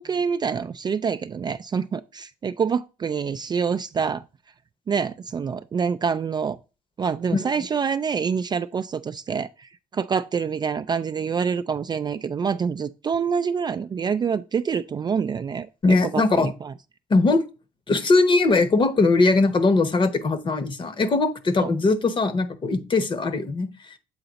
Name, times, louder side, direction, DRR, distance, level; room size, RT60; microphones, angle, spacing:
voice 1, 0.0-4.2 4.9-6.6 7.0-15.7 16.1-16.7 21.6-21.7, right 6 dB, 30° right, 0.3 m, -26 dB
voice 2, 15.8-16.5 17.1-17.4 17.9-23.7, left 3 dB, 35° left, 0.9 m, -20 dB
7.9 x 4.0 x 3.9 m
cardioid pair, 90°, 15 cm